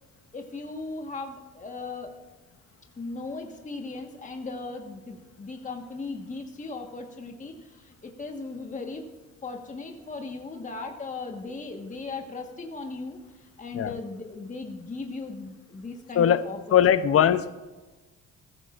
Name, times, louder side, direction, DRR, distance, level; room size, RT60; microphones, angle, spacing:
voice 1, 0.3-2.1 3.0-9.0 9.4-17.2, left 3 dB, 25° left, 3 dB, 1.4 m, -37 dB
voice 2, 16.7-17.5, left 9 dB, 50° left, 14 dB, 0.7 m, -20 dB
15.5 x 14.5 x 2.5 m, 1.2 s
cardioid pair, 90°, 30 cm